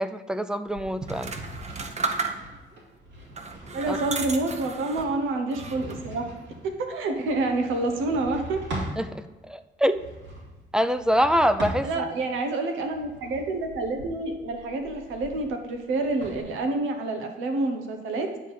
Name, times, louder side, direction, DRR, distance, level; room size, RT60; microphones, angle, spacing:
voice 1, 0.0-1.4 3.9-4.0 7.2-7.3 9.0-10.0 10.7-12.0, equal, 5° right, 11 dB, 0.4 m, -25 dB
sound 1, 0.7-9.0 9.8-12.3 12.8-16.4, right 1 dB, 65° right, 3.1 m, -41 dB
sound 2, 1.0-2.7 3.3-5.1 5.5-6.1, right 4 dB, 35° right, 0.9 m, -33 dB
voice 2, 3.7-6.3 6.6-8.6 11.8-18.3, right 2 dB, 90° right, 4 dB, 1.2 m, -28 dB
9.9 x 3.7 x 6.7 m, 1.1 s
cardioid pair, 90°, 20 cm